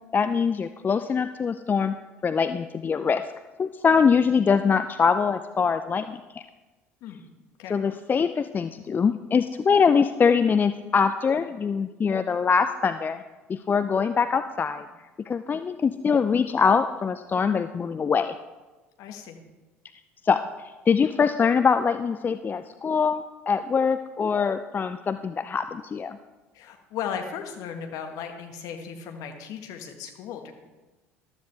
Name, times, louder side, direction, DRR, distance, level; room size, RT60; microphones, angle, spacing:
voice 1, 0.1-2.0 2.2-3.2 3.6-6.4 7.7-13.2 13.5-14.9 15.3-18.3 20.2-20.5 20.9-26.2, left 6 dB, 30° left, 11 dB, 0.5 m, -23 dB
voice 2, 19.0-19.4 26.5-30.5, left 7 dB, 55° left, 5 dB, 1.6 m, -36 dB
14.0 x 12.5 x 3.4 m, 1.2 s
figure-of-eight pair, 60°, 7 cm